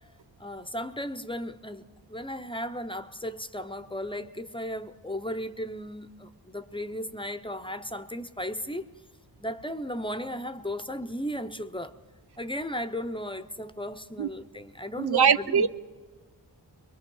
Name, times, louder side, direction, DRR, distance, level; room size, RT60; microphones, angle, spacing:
voice 1, 0.4-8.8 9.4-11.9 12.4-15.7, equal, 10° left, 0.8 m, -35 dB
voice 2, 15.0-15.7, right 7 dB, 65° right, 0.7 m, -22 dB
23.0 x 22.5 x 5.5 m
wide cardioid pair, 75°, 42 cm